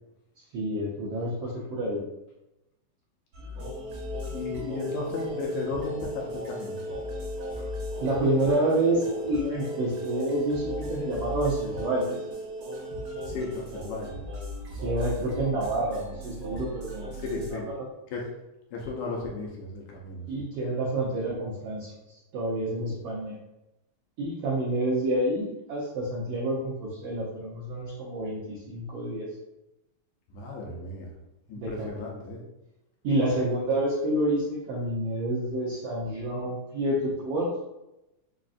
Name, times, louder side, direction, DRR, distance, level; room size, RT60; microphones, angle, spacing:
voice 1, 0.5-2.0 8.0-12.2 14.8-17.9 20.3-21.9 22.3-23.4 24.2-29.3 31.6-32.2 33.0-37.5, right 1 dB, 80° right, -5 dB, 1.4 m, -28 dB
sound 1, 3.3-17.5, equal, 60° right, 1.6 m, -36 dB
voice 2, 4.3-6.8 13.3-14.2 17.3-17.7 18.1-18.2 18.7-20.3 30.3-31.1 31.5-32.4, left 3 dB, 80° left, -2 dB, 1.9 m, -34 dB
5.0 x 2.5 x 2.4 m, 0.94 s
omnidirectional pair, 3.5 m